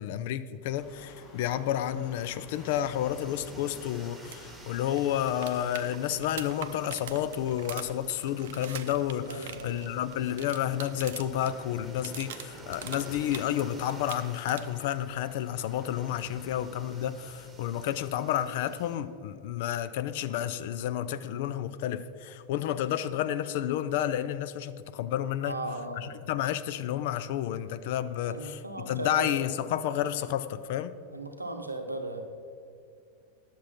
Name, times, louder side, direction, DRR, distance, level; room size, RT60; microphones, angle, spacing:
voice 1, 0.0-25.6 26.0-28.6 28.9-30.9, left 11 dB, 50° left, 0.4 m, -31 dB
sound 1, 0.7-10.1, left 3 dB, 30° left, 2.1 m, -52 dB
sound 2, 2.5-19.0, right 1 dB, 10° right, 1.3 m, -50 dB
sound 3, 4.2-4.4 4.7-4.8 5.0-11.5 11.8-13.6 13.9-14.8 16.9-17.0, right 10 dB, 55° right, 0.6 m, -42 dB
voice 2, 9.3-10.0 25.4-26.2 28.3-29.4 31.1-32.2, right 1 dB, 85° right, 0.9 m, -37 dB
10.0 x 7.0 x 5.7 m
figure-of-eight pair, 90°, 0 cm